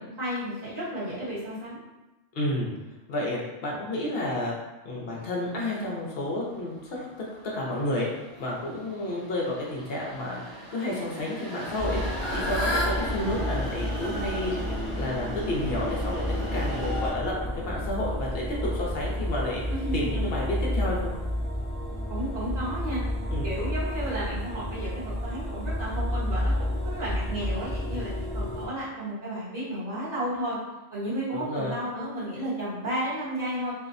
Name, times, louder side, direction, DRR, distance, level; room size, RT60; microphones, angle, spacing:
voice 1, 0.0-1.8 19.7-20.2 22.1-23.0 23.4-24.9 25.2-30.6 30.9-33.7, right 1 dB, 35° right, -10 dB, 1.0 m, -33 dB
voice 2, 2.3-2.7 3.1-4.5 4.8-7.0 7.5-8.1 8.4-10.4 10.7-12.0 12.3-19.6 19.9-21.1 23.3-23.5 31.3-31.7, left 1 dB, 60° left, -3 dB, 0.8 m, -31 dB
sound 1, 5.5-17.1, equal, 70° right, 0.9 m, -38 dB
Fowl / Bird, 11.6-16.9, left 1 dB, 35° left, 0.4 m, -35 dB
sound 2, 11.8-28.7, left 1 dB, ahead, 0.7 m, -31 dB
2.6 x 2.1 x 2.5 m, 1.0 s
omnidirectional pair, 1.3 m